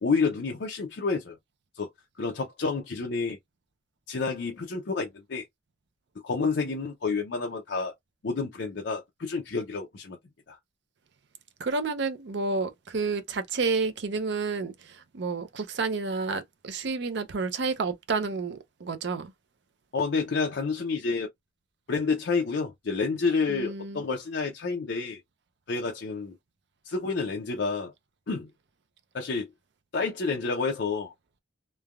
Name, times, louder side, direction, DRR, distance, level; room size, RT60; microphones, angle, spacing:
voice 1, 0.0-1.4 1.8-1.9 2.2-3.4 4.1-5.4 6.2-7.9 8.2-10.2 10.5-10.6 19.9-21.3 21.9-25.2 25.7-26.3 26.9-27.9 28.3-28.5 29.1-29.5 29.9-31.1, left 4 dB, 65° left, 0.5 m, -29 dB
voice 2, 11.6-19.3 23.5-24.0, right 4 dB, 65° right, 0.5 m, -30 dB
3.2 x 2.1 x 2.3 m
head